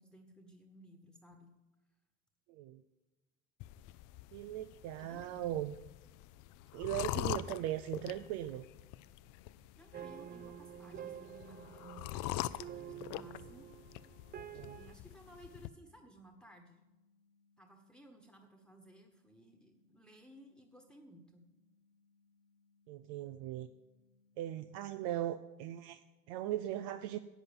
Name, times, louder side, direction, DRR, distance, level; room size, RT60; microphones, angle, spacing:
voice 1, 0.0-1.5 5.0-5.5 9.7-13.7 14.5-16.8 17.6-21.5, right 1 dB, 5° left, 5 dB, 1.3 m, -58 dB
voice 2, 2.5-2.8 4.3-5.8 6.7-8.6 14.3-14.8 22.9-23.7 24.4-27.2, right 13 dB, 80° right, 11 dB, 0.6 m, -39 dB
sound 1, 3.6-15.7, left 15 dB, 70° left, 0.5 m, -44 dB
sound 2, 8.1-24.6, left 4 dB, 45° left, 1.4 m, -73 dB
sound 3, 9.9-14.9, right 10 dB, 30° right, 0.5 m, -49 dB
11.0 x 8.2 x 7.0 m, 1.1 s
supercardioid pair, 90°, 32 cm